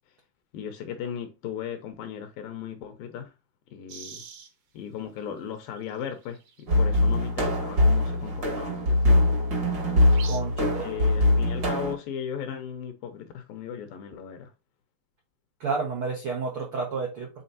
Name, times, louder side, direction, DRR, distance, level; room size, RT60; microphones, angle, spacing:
voice 1, 0.5-3.3 3.7-4.2 4.7-9.1 10.6-14.5, left 8 dB, 75° left, 2.3 m, -37 dB
sound 1, 3.9-4.5 5.4-5.5 5.7-6.6 7.9-8.0 9.9-10.4, right 7 dB, 60° right, 2.0 m, -43 dB
sound 2, 6.7-11.9, left 1 dB, 45° right, 1.2 m, -22 dB
voice 2, 10.2-10.9 15.6-17.3, right 4 dB, 80° right, 1.2 m, -30 dB
8.6 x 4.0 x 2.8 m
omnidirectional pair, 4.7 m